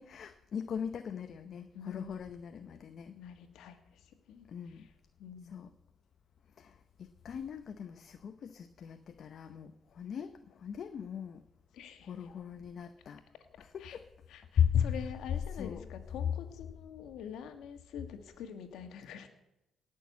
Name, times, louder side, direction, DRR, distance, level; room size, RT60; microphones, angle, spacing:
voice 1, 0.0-3.2 4.5-4.9 5.4-5.7 6.6-11.4 12.0-13.2 13.6-14.1 14.6-15.0 15.5-15.9, left 8 dB, 60° left, 9 dB, 0.8 m, -37 dB
voice 2, 1.7-2.1 3.1-4.5 4.7-4.9 5.2-5.7 11.7-12.1 13.8-14.0 14.3-19.3, left 8 dB, 85° left, 7 dB, 1.7 m, -46 dB
18.0 x 6.5 x 8.5 m, 0.91 s
cardioid pair, 90°, 0 cm